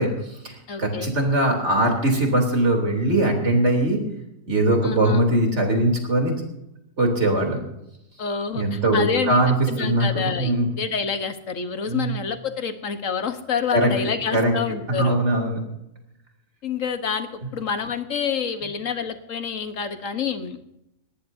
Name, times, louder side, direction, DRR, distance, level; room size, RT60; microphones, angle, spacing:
voice 1, 0.0-4.0 4.5-6.4 7.0-7.6 8.5-10.1 10.4-10.7 11.9-12.1 13.7-13.9 14.3-14.5 15.0-15.6, right 1 dB, 60° right, 2 dB, 3.6 m, -21 dB
voice 2, 0.7-1.1 4.8-5.2 8.2-9.4 9.7-15.1 16.6-20.6, left 6 dB, 80° left, 8 dB, 1.6 m, -28 dB
19.0 x 18.5 x 2.7 m, 0.86 s
omnidirectional pair, 1.3 m